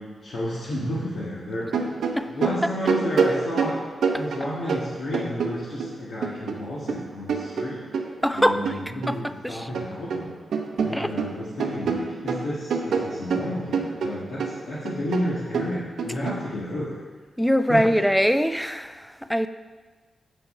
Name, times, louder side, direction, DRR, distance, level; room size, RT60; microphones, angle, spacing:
voice 1, 0.0-3.8 4.1-7.8 8.3-10.4 10.8-17.0 17.7-17.8, left 1 dB, 75° left, -8 dB, 1.7 m, -32 dB
sound 1, 1.6-5.9 6.2-9.2 9.5-10.3 10.5-16.4, right 5 dB, 90° right, 0.7 m, -27 dB
voice 2, 8.2-8.6 9.1-9.7 10.9-11.1 17.4-19.5, equal, ahead, 10 dB, 0.4 m, -23 dB
8.0 x 5.7 x 5.4 m, 1.4 s
wide cardioid pair, 125°, 0 cm